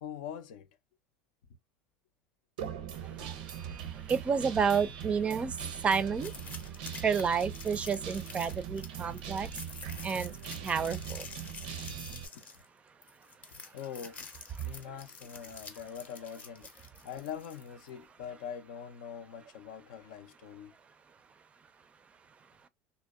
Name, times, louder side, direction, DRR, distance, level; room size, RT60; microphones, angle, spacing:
voice 1, 0.0-0.7 12.3-12.4 13.5-14.3 14.6-20.7, left 8 dB, 80° left, 0.5 m, -43 dB
Guitar, 2.6-12.3, right 9 dB, 85° right, 0.5 m, -41 dB
voice 2, 4.1-5.5 5.8-6.3 7.0-9.5 10.0-10.3 10.6-11.2, right 6 dB, 25° right, 0.4 m, -29 dB
sound 1, 6.2-17.9, left 5 dB, 35° left, 0.6 m, -48 dB
2.7 x 2.0 x 2.3 m
supercardioid pair, 100°, 5 cm